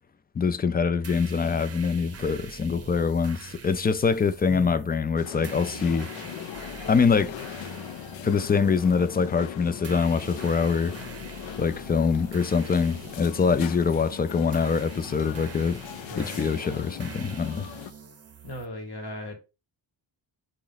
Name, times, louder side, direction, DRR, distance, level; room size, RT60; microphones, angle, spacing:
voice 1, 0.4-6.1 6.9-7.3 8.2-10.9 11.6-15.8 16.2-17.7, left 5 dB, 25° left, 0.3 m, -24 dB
sound 1, 1.0-18.7, right 6 dB, 35° right, 0.6 m, -45 dB
voice 2, 4.5-4.9 16.1-16.5 18.4-19.4, equal, 55° left, 1.8 m, -37 dB
sound 2, 5.2-17.9, left 10 dB, 75° left, 0.6 m, -39 dB
4.1 x 3.1 x 3.9 m
cardioid pair, 105°, 46 cm